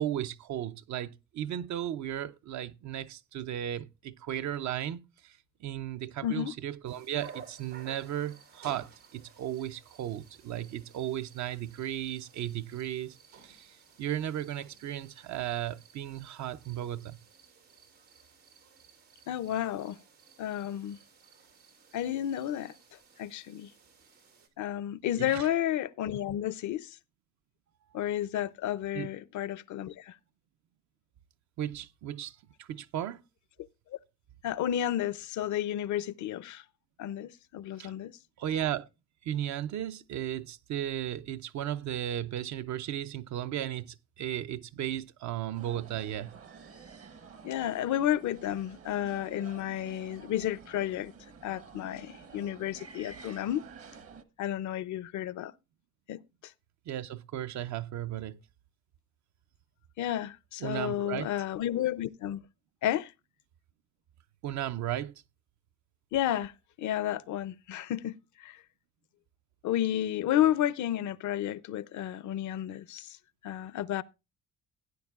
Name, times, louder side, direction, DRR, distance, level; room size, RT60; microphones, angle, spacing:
voice 1, 0.0-13.2 13.4-13.7 14.0-17.2 25.2-25.5 28.9-29.1 31.6-33.2 37.8-37.9 38.4-38.9 39.2-46.3 56.9-58.4 60.6-61.3 64.4-65.1, right 11 dB, 70° right, 0.6 m, -35 dB
voice 2, 6.2-6.5 19.3-20.0 20.4-21.0 21.9-22.7 23.2-23.7 24.6-27.0 27.9-30.2 34.4-36.6 37.0-38.2 47.4-51.1 51.4-53.6 54.4-55.5 56.1-56.5 60.0-62.4 62.8-63.1 66.1-66.5 66.8-68.6 69.6-73.2 73.4-74.0, left 12 dB, 75° left, 0.6 m, -32 dB
sound 1, 6.8-24.5, right 6 dB, 90° right, 2.4 m, -56 dB
sound 2, 45.5-54.2, right 5 dB, 50° right, 1.0 m, -50 dB
16.5 x 9.3 x 2.4 m
cardioid pair, 90°, 30 cm